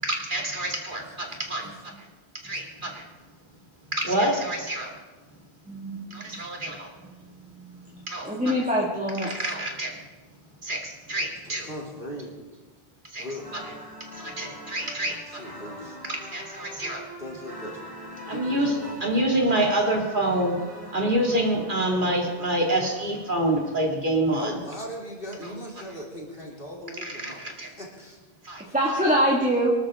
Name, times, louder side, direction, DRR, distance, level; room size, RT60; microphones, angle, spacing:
voice 1, 0.0-1.7 2.0-2.1 2.4-3.0 3.9-4.9 6.1-6.9 8.1-8.7 9.2-10.0 10.6-11.8 13.1-13.6 14.1-15.6 16.1-17.0 18.3-20.6 20.9-24.6 25.4-25.6 27.0-27.7 28.4-29.1, right 1 dB, 50° right, 0 dB, 2.7 m, -27 dB
voice 2, 1.3-1.7 11.4-12.4 13.2-13.5 15.3-16.0 17.2-17.8 18.3-19.0 24.3-28.2 28.6-28.7, equal, 55° left, -2 dB, 3.6 m, -39 dB
voice 3, 5.7-6.2 8.2-9.3 28.7-29.7, equal, 5° right, -3 dB, 2.1 m, -24 dB
sound 1, 13.4-23.8, equal, 30° right, 3.5 m, -43 dB
24.5 x 12.5 x 3.8 m, 1.3 s
omnidirectional pair, 1.1 m